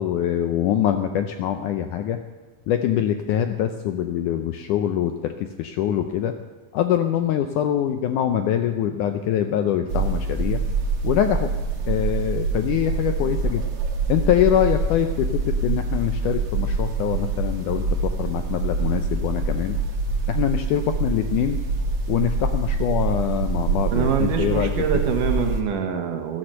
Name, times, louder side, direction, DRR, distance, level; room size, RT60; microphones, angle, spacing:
voice 1, 0.0-2.2 2.7-6.3 6.7-10.6 11.0-11.5 11.9-13.6 14.1-19.8 20.3-21.6 22.1-24.7, left 10 dB, 80° left, 7 dB, 1.9 m, -24 dB
sound 1, 9.9-25.6, right 3 dB, 50° right, 2.2 m, -25 dB
voice 2, 23.9-26.4, right 7 dB, 65° right, 4 dB, 2.7 m, -24 dB
14.5 x 13.0 x 6.6 m, 1.3 s
omnidirectional pair, 4.3 m